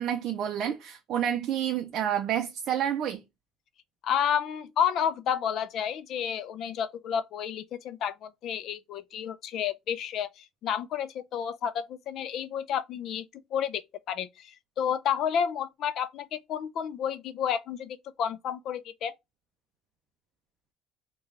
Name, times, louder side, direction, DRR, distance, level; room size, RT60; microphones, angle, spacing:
voice 1, 0.0-3.2, right 10 dB, 55° right, 0.4 m, -29 dB
voice 2, 4.0-13.8 14.1-19.1, left 8 dB, 55° left, 0.4 m, -31 dB
3.1 x 2.3 x 3.5 m
cardioid pair, 135°, 0 cm